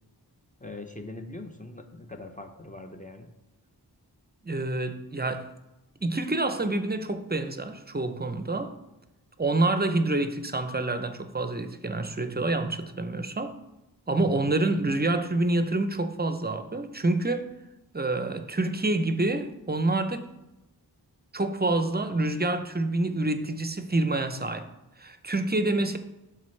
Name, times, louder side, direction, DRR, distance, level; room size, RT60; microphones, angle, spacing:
voice 1, 0.6-3.3 14.1-14.4, left 2 dB, 20° left, 0.6 m, -41 dB
voice 2, 4.4-5.5 6.0-8.8 9.4-13.6 14.1-17.5 17.9-20.3 21.3-24.7 25.0-26.0, right 2 dB, 25° right, 0.5 m, -27 dB
11.5 x 3.9 x 3.2 m
wide cardioid pair, 65°, 41 cm